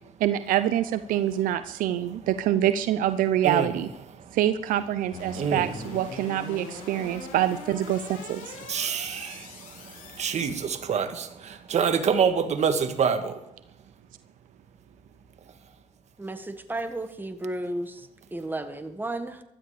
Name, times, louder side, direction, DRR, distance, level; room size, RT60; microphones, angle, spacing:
voice 1, 0.2-3.9 4.3-8.6, right 12 dB, 75° right, 12 dB, 0.7 m, -25 dB
sound 1, 5.1-10.6, left 3 dB, 80° left, 5.8 m, -42 dB
voice 2, 5.3-5.7 8.7-13.4, right 6 dB, 55° right, 8 dB, 1.8 m, -26 dB
voice 3, 16.2-19.4, right 1 dB, 15° right, 8 dB, 1.7 m, -33 dB
15.5 x 12.5 x 5.0 m, 0.86 s
supercardioid pair, 75°, 14 cm